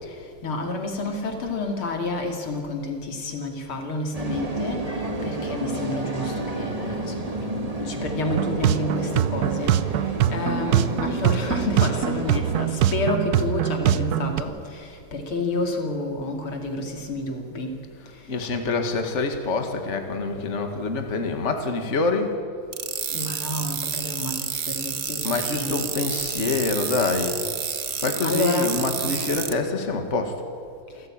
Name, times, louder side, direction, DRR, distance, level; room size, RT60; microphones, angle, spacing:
voice 1, 0.4-4.9 5.2-9.7 10.3-17.7 23.1-25.8 28.2-29.4, left 2 dB, 85° left, 4 dB, 3.5 m, -29 dB
sound 1, 4.1-12.7, right 1 dB, 20° right, 1.6 m, -31 dB
sound 2, 8.3-14.4, right 11 dB, 65° right, 1.0 m, -23 dB
voice 2, 18.3-22.3 25.2-27.4 28.0-30.4, left 3 dB, 35° left, 5 dB, 2.1 m, -26 dB
sound 3, 22.7-29.5, right 7 dB, 45° right, 1.3 m, -29 dB
27.5 x 15.0 x 8.9 m, 2.3 s
omnidirectional pair, 2.3 m